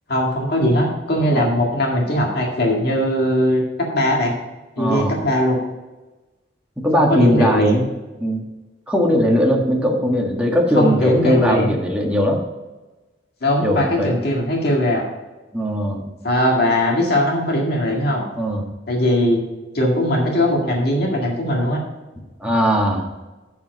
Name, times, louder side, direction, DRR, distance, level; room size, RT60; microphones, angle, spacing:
voice 1, 0.1-4.3 4.8-5.6 6.9-7.8 10.8-11.7 13.4-15.1 15.9-18.2 18.9-19.4 19.7-21.8, left 1 dB, 60° left, -1 dB, 1.9 m, -20 dB
voice 2, 4.8-5.2 6.8-7.8 8.2-8.4 8.9-12.4 13.6-14.1 15.5-16.0 18.4-18.6 22.4-23.1, equal, 5° right, -1 dB, 1.6 m, -19 dB
7.2 x 7.0 x 5.3 m, 1.1 s
head